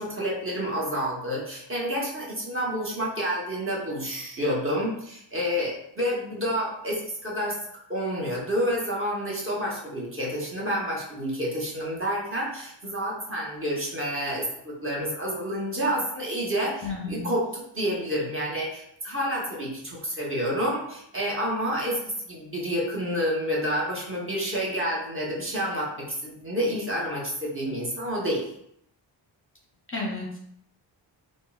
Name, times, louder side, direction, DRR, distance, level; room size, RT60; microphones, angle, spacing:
voice 1, 0.0-7.5 7.9-22.0 22.3-28.4, equal, 25° right, -4 dB, 0.9 m, -29 dB
voice 2, 16.8-17.3 29.9-30.4, left 3 dB, 25° left, -3 dB, 0.6 m, -32 dB
3.6 x 2.0 x 2.3 m, 0.73 s
cardioid pair, 75°, 47 cm